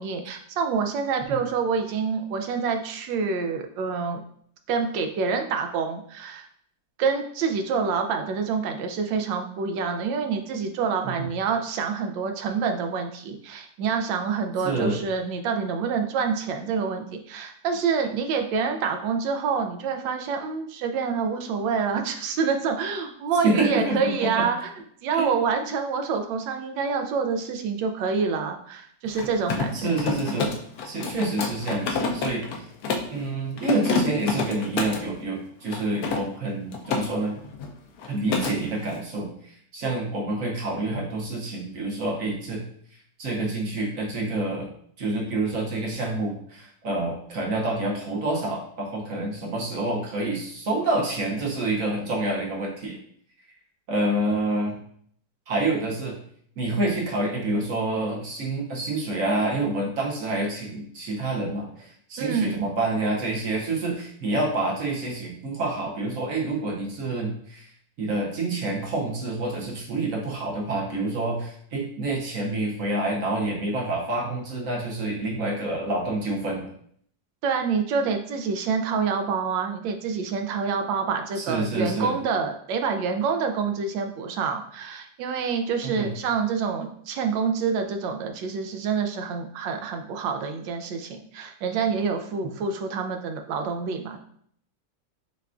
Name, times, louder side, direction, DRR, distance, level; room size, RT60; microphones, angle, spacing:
voice 1, 0.0-4.2 4.7-6.5 7.0-24.7 25.0-29.9 62.2-62.7 77.4-94.2, right 5 dB, 80° right, 5 dB, 1.3 m, -27 dB
voice 2, 14.6-15.0 23.4-24.5 25.2-25.4 29.7-30.5 30.8-32.7 33.1-37.4 38.1-42.6 43.2-44.7 45.0-53.0 53.9-54.8 55.5-56.2 56.6-67.7 68.0-76.7 81.4-82.2 85.8-86.1, right 2 dB, 60° right, -2 dB, 0.9 m, -27 dB
Mechanisms, 29.1-33.2 33.6-35.1 35.7-37.1 37.4-37.7 38.0-38.6, left 4 dB, 70° left, 0.9 m, -28 dB
6.5 x 2.3 x 2.4 m, 0.63 s
omnidirectional pair, 2.0 m